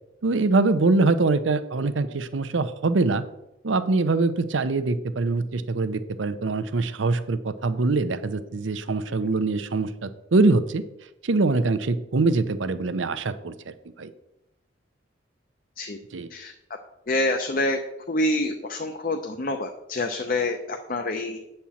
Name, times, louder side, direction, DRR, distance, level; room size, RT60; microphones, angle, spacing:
voice 1, 0.2-3.2 3.6-10.8 11.2-14.1 16.1-16.3, right 3 dB, 85° right, 12 dB, 0.6 m, -23 dB
voice 2, 17.1-17.8 18.1-21.4, left 2 dB, 45° left, 5 dB, 0.6 m, -26 dB
8.6 x 4.4 x 7.1 m, 0.89 s
head